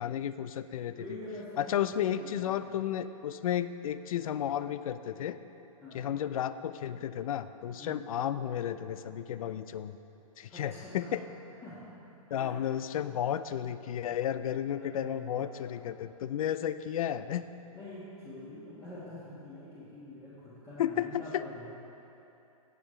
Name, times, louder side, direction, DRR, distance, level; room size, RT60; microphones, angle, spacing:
voice 1, 0.0-1.0 1.6-5.4 5.9-10.0 10.4-11.2 12.3-17.4 20.8-21.4, left 10 dB, 75° left, 13 dB, 0.4 m, -33 dB
voice 2, 1.0-2.7 5.8-6.1 7.8-8.0 10.5-11.1 11.6-11.8 12.3-12.6 12.9-13.0 14.7-15.9 17.7-21.7, left 1 dB, 15° left, -10 dB, 1.5 m, -46 dB
17.0 x 6.1 x 3.2 m, 3.0 s
hypercardioid pair, 160°, 18 cm